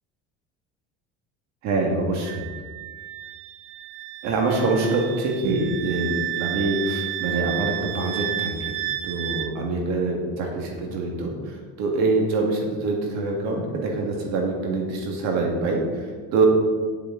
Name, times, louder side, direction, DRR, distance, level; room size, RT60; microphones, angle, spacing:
voice 1, 1.6-2.4 4.2-8.8 9.0-16.5, right 3 dB, 65° right, 1 dB, 1.8 m, -25 dB
Wind instrument woodwind instrument, 2.2-9.5, right 13 dB, 50° right, 0.5 m, -32 dB
9.6 x 6.2 x 3.8 m, 1.5 s
cardioid pair, 115°, 29 cm